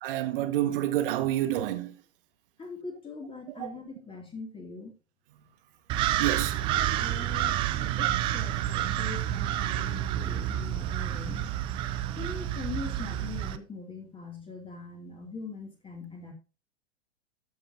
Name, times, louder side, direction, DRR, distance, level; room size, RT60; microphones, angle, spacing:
voice 1, 0.0-1.9 3.5-3.7 6.2-7.3 8.0-8.1, right 13 dB, 45° right, 1.4 m, -29 dB
voice 2, 2.6-4.9 6.9-11.4 12.2-16.3, left 4 dB, 15° left, 2.3 m, -42 dB
sound 1, 5.9-13.6, right 12 dB, 15° right, 0.4 m, -29 dB
13.5 x 7.1 x 2.6 m
figure-of-eight pair, 100°, 37 cm